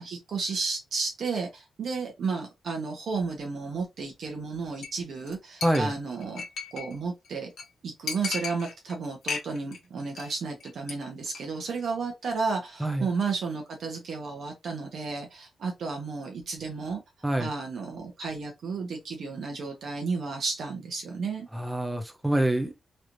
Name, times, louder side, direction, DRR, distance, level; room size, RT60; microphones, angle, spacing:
voice 1, 0.0-6.4 6.7-7.5 7.8-17.0 17.4-21.5, right 4 dB, 60° right, 0.9 m, -32 dB
Chink clink, 4.8-5.0 5.3-5.4 5.6-6.9 7.2-7.3 7.6-7.7 8.1-8.9 9.2-9.8 10.0-10.3 10.6-10.9 11.2-11.4, left 5 dB, 85° left, 1.0 m, -35 dB
voice 2, 5.6-5.9 12.8-13.1 17.2-17.5 21.5-22.8, right 1 dB, 5° right, 0.6 m, -26 dB
3.2 x 3.0 x 2.6 m
wide cardioid pair, 165°, 0 cm